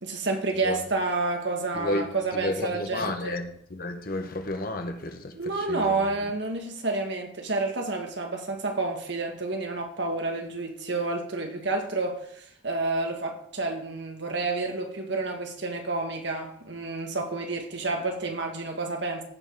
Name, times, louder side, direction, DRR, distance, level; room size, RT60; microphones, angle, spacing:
voice 1, 0.0-3.4 5.3-19.2, right 3 dB, 60° right, 1.8 m, -30 dB
voice 2, 1.7-2.1 2.3-6.1, left 2 dB, 50° left, 1.2 m, -32 dB
15.5 x 5.4 x 4.9 m
head